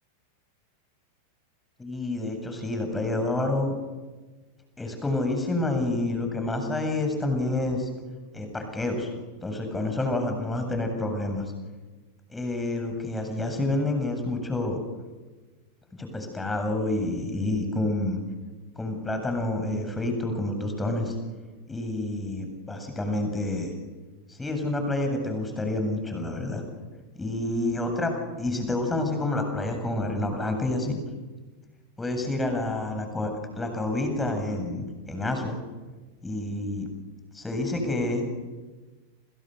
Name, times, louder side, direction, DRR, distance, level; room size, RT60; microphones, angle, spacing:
voice 1, 1.8-3.7 4.8-7.9 8.3-9.1 9.4-11.5 12.3-14.8 16.0-18.2 18.7-21.1 21.7-23.7 24.3-26.6 27.1-28.1 28.4-31.0 32.0-33.3 33.6-35.6 36.2-36.9 37.3-38.2, left 2 dB, 10° left, 5 dB, 7.8 m, -28 dB
29.5 x 28.5 x 6.9 m, 1.3 s
figure-of-eight pair, 90°, 0 cm